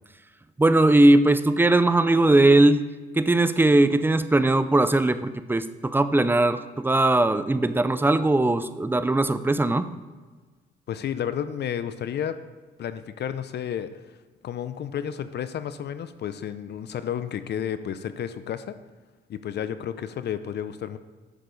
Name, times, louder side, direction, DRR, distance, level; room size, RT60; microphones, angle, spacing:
voice 1, 0.6-2.8 3.2-9.9, right 2 dB, 10° right, 12 dB, 0.5 m, -19 dB
voice 2, 10.9-12.4 12.8-13.9 14.4-18.7 19.3-21.0, left 9 dB, 60° left, 12 dB, 0.5 m, -31 dB
9.9 x 6.7 x 3.9 m, 1.4 s
cardioid pair, 90°, 20 cm